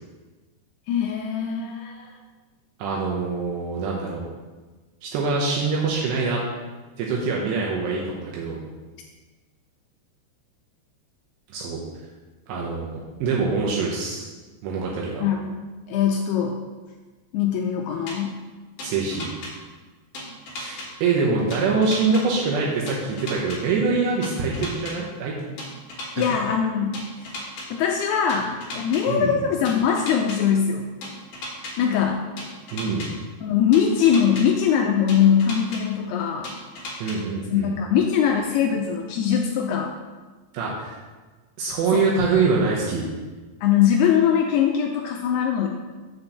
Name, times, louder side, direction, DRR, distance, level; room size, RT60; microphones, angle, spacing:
voice 1, 0.9-2.1 15.2-15.6 15.9-16.6 17.3-18.4 26.2-27.3 27.7-30.8 31.8-32.3 33.4-36.5 37.5-39.9 41.9-42.1 43.6-45.7, left 8 dB, 85° left, 1 dB, 2.2 m, -22 dB
voice 2, 2.8-4.2 5.0-6.4 7.0-8.6 11.5-11.8 12.5-14.3 14.6-15.2 18.8-19.3 20.6-25.6 26.2-26.4 29.1-29.4 32.7-33.1 37.0-37.7 40.5-41.0 41.6-43.0, right 4 dB, 80° right, -3 dB, 3.0 m, -24 dB
sound 1, 18.1-18.2 18.8-19.5 20.1-20.9 21.5-22.2 22.9-23.6 24.2-24.9 25.6-26.3 26.9-27.7 28.3-29.0 29.7-30.4 31.0-31.7 32.4-33.1 33.7-34.4 35.1-35.8 36.4-37.2, left 2 dB, 60° left, 2.5 m, -35 dB
7.1 x 4.4 x 6.5 m, 1.3 s
omnidirectional pair, 5.2 m